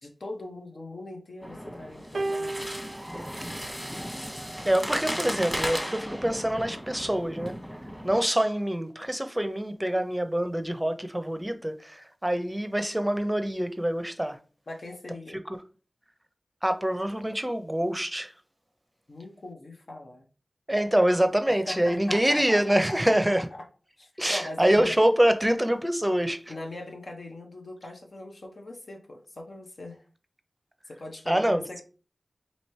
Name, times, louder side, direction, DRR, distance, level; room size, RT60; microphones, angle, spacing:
voice 1, 0.0-2.7 14.7-15.4 19.1-20.2 21.5-23.0 23.4-23.5 24.0-24.9 26.5-30.0 30.9-31.8, left 2 dB, 70° left, 0.9 m, -40 dB
sound 1, 1.4-8.2, equal, 5° left, 1.1 m, -36 dB
sound 2, 2.1-4.6 5.6-5.8, right 2 dB, 80° right, 0.4 m, -36 dB
voice 2, 4.6-7.6 8.0-14.4 16.6-18.3 20.7-23.5 24.2-26.4 31.3-31.8, right 1 dB, 15° right, 0.6 m, -25 dB
3.1 x 2.8 x 4.3 m
cardioid pair, 40°, 0 cm